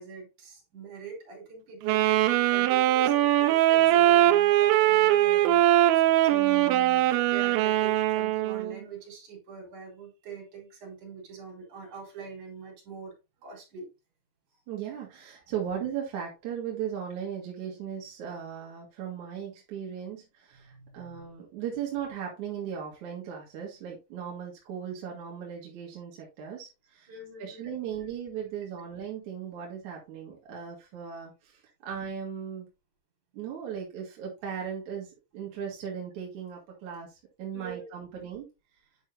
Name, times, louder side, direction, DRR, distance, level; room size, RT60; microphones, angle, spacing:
voice 1, 0.0-6.2 7.1-13.1 13.4-13.9 20.5-21.2 27.1-27.7 37.5-38.3, right 5 dB, 40° right, 4.9 m, -43 dB
Wind instrument woodwind instrument, 1.8-8.8, right 14 dB, 85° right, 2.6 m, -22 dB
voice 2, 6.3-7.1 14.7-27.1 27.4-32.7 33.3-38.5, right 8 dB, 60° right, 2.1 m, -37 dB
9.7 x 5.5 x 2.6 m
omnidirectional pair, 5.7 m